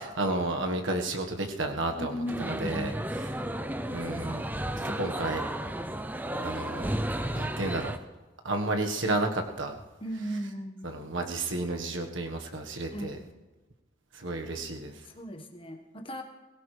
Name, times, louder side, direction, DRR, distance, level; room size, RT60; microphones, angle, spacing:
voice 1, 0.0-2.9 3.3-3.4 3.9-4.4 4.8-5.4 6.4-6.9 7.3-7.9 8.4-9.8 10.8-13.2 14.1-15.0, right 2 dB, 80° right, 4 dB, 1.5 m, -32 dB
voice 2, 2.0-3.1 4.8-5.6 10.0-11.0 12.9-13.2 15.0-16.2, equal, 25° left, 3 dB, 1.4 m, -37 dB
sound 1, 2.3-8.0, right 1 dB, 10° right, 0.5 m, -33 dB
22.0 x 16.5 x 3.4 m, 1.2 s
head